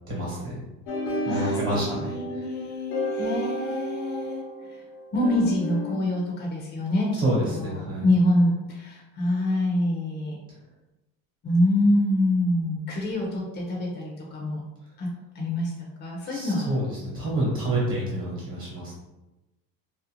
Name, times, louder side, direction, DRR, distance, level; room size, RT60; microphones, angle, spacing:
voice 1, 0.1-0.6 1.2-2.5 7.2-8.0 16.3-18.9, right 1 dB, 35° right, -6 dB, 1.0 m, -28 dB
sound 1, 0.9-5.9, equal, 85° left, 0.7 m, -32 dB
voice 2, 1.2-1.6 2.1-4.4 4.7-4.8 5.1-10.4 11.4-14.6 15.0-15.1 15.3-15.7 16.0-16.7, left 1 dB, 25° left, -2 dB, 0.5 m, -25 dB
2.6 x 2.0 x 2.8 m, 1.0 s
cardioid pair, 125°, 39 cm